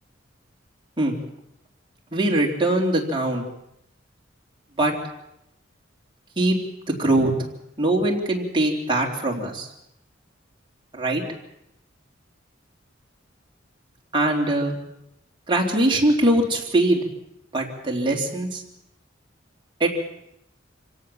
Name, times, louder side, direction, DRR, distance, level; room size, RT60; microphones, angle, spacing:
voice 1, 2.1-3.5 4.8-4.9 6.4-6.6 6.9-7.3 7.8-9.7 10.9-11.2 14.1-14.7 15.5-17.0 17.5-18.6 19.8-20.0, right 1 dB, 25° right, -1 dB, 3.7 m, -22 dB
26.0 x 17.5 x 7.3 m, 0.81 s
head